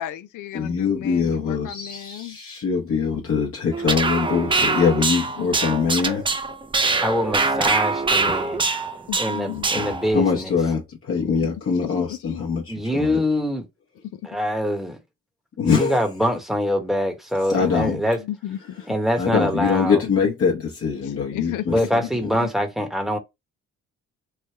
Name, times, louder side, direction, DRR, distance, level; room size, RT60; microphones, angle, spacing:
voice 1, 0.0-2.4 5.4-5.6 9.1-9.9 11.4-12.4 17.6-18.9 21.0-22.1 22.4-22.5, left 13 dB, 80° left, 0.5 m, -34 dB
voice 2, 0.5-6.2 9.7-13.2 15.6-16.1 17.5-18.0 19.2-22.1, left 6 dB, 50° left, 0.9 m, -23 dB
sound 1, 3.7-10.1, right 3 dB, 15° right, 0.5 m, -23 dB
voice 3, 7.0-8.6 9.2-10.5 12.7-13.6 14.2-15.0 15.6-18.2 18.9-20.0 21.7-23.2, equal, ahead, 1.0 m, -24 dB
3.3 x 2.1 x 4.3 m
cardioid pair, 90°, 30 cm